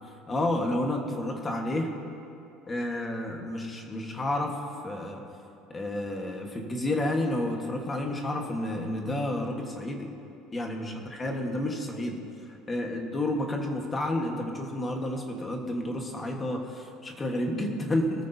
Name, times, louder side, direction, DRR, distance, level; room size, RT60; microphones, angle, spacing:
voice 1, 0.3-1.9 2.7-5.2 5.7-10.1 10.5-18.3, left 1 dB, 15° left, 2 dB, 1.3 m, -30 dB
24.0 x 13.5 x 2.7 m, 2.7 s
cardioid pair, 175°, 0 cm